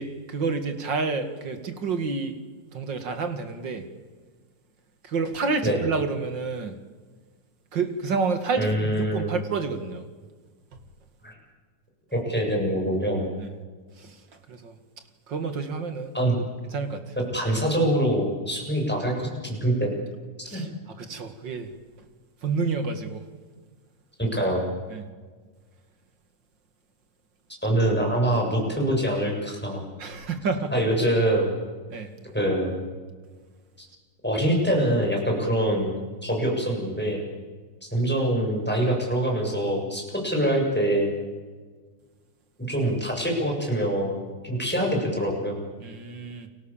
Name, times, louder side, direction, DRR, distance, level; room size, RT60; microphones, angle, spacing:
voice 1, 0.0-2.3 2.7-3.9 5.0-6.8 7.7-10.1 13.4-13.5 14.0-14.2 14.5-14.8 15.3-16.2 16.7-17.1 20.4-20.7 21.0-21.7 22.4-23.2 24.9-25.1 30.0-30.7 31.9-32.1 45.8-46.5, right 4 dB, 40° right, 8 dB, 2.3 m, -29 dB
voice 2, 8.6-9.3 11.2-11.3 12.1-13.2 16.1-16.4 17.3-19.9 20.5-20.6 24.2-24.7 27.6-29.8 30.7-31.5 32.3-32.7 33.8-33.9 34.2-35.9 36.2-37.2 37.8-41.1 42.7-44.2 44.4-45.6, right 1 dB, 5° left, 0 dB, 6.9 m, -24 dB
30.0 x 23.0 x 7.4 m, 1.4 s
omnidirectional pair, 3.7 m